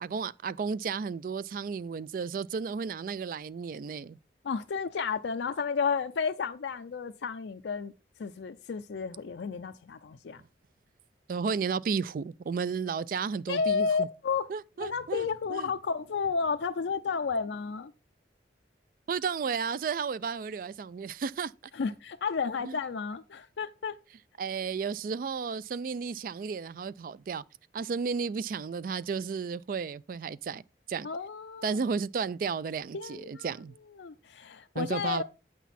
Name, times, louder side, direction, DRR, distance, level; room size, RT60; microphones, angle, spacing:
voice 1, 0.0-4.2 11.3-14.1 14.5-15.7 19.1-21.5 22.6-22.8 24.4-27.4 27.7-30.6 30.9-31.1 31.6-33.7 34.8-35.2, right 5 dB, 50° right, 0.3 m, -33 dB
voice 2, 4.4-7.9 8.2-10.4 13.5-14.5 14.8-17.9 21.7-23.9 31.0-31.8 32.9-33.5 34.0-35.2, left 5 dB, 80° left, 0.4 m, -32 dB
8.1 x 6.1 x 4.1 m
head